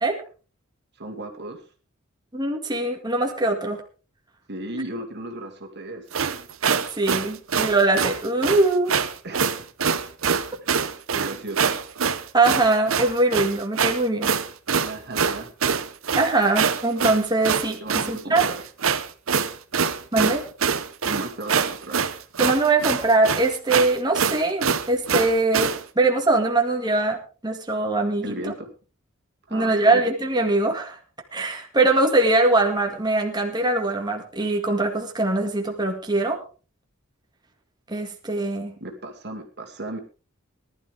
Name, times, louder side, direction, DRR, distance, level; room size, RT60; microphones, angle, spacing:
voice 1, 1.0-1.6 4.5-6.1 9.2-9.7 10.6-11.8 14.7-15.5 17.8-18.6 21.0-22.2 28.2-28.7 29.5-30.1 38.8-40.0, right 1 dB, 55° right, 3 dB, 2.5 m, -35 dB
voice 2, 2.3-3.8 7.0-9.0 12.3-14.3 16.2-18.4 20.1-20.4 22.4-28.4 29.5-31.0 31.3-36.4 37.9-38.7, right 2 dB, 20° right, 2 dB, 2.0 m, -22 dB
sound 1, 6.1-25.8, right 6 dB, 70° right, 1.0 m, -24 dB
19.0 x 12.0 x 3.5 m, 0.36 s
head